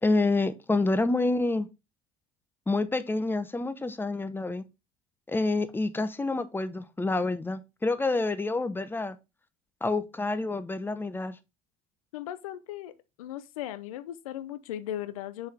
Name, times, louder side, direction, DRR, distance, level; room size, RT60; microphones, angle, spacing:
voice 1, 0.0-1.7 2.7-4.6 5.3-9.2 9.8-11.4, left 2 dB, 10° left, 0.8 m, -28 dB
voice 2, 12.1-12.9 13.2-15.5, left 12 dB, 85° left, 0.6 m, -37 dB
6.1 x 4.9 x 3.4 m
hypercardioid pair, 70°, 17 cm